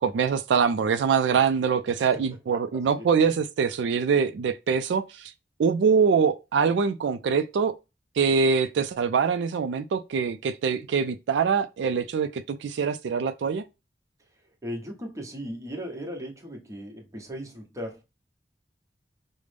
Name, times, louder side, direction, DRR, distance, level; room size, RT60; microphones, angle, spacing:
voice 1, 0.0-5.3 5.6-7.8 8.2-13.6, right 6 dB, 85° right, 0.3 m, -24 dB
voice 2, 2.5-3.1 14.6-18.0, equal, 20° right, 0.9 m, -37 dB
5.1 x 2.1 x 3.3 m
head